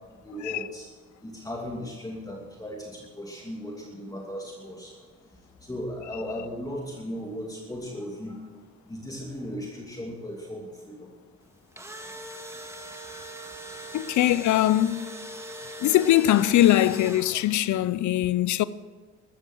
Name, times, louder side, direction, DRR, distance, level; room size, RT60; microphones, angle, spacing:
voice 1, 0.1-0.9 1.2-5.0 5.3-8.5 8.8-11.1, equal, 10° left, 2.8 m, -37 dB
Engine / Drill, 11.5-17.7, right 1 dB, 10° right, 1.9 m, -41 dB
voice 2, 13.9-15.1 15.8-18.6, left 13 dB, 70° left, 0.6 m, -21 dB
13.5 x 13.5 x 6.4 m
cardioid pair, 90°, 30 cm